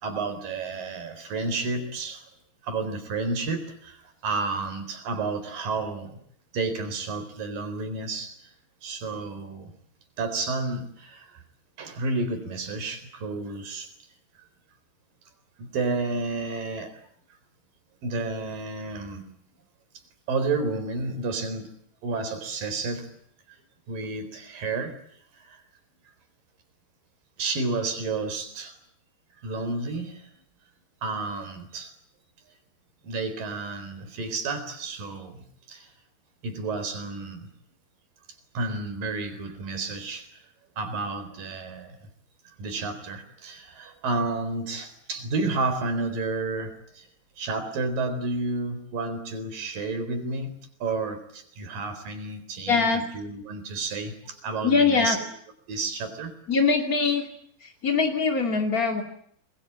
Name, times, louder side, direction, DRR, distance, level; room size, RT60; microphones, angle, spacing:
voice 1, 0.0-2.3 2.6-6.2 6.5-8.4 8.8-9.7 10.2-11.4 11.8-13.9 15.6-17.0 18.0-19.3 20.3-21.7 22.0-23.1 23.9-25.0 25.3-25.6 27.4-28.8 29.4-30.3 31.0-31.9 33.0-35.9 36.4-37.5 38.5-40.3 40.8-42.1 42.5-47.1 47.4-55.2 55.7-56.3, right 3 dB, 45° right, 9 dB, 5.4 m, -31 dB
voice 2, 52.7-53.0 54.6-55.2 56.5-57.3 57.6-59.0, left 4 dB, 35° left, 3 dB, 1.4 m, -22 dB
27.5 x 21.5 x 8.8 m, 0.66 s
omnidirectional pair, 5.9 m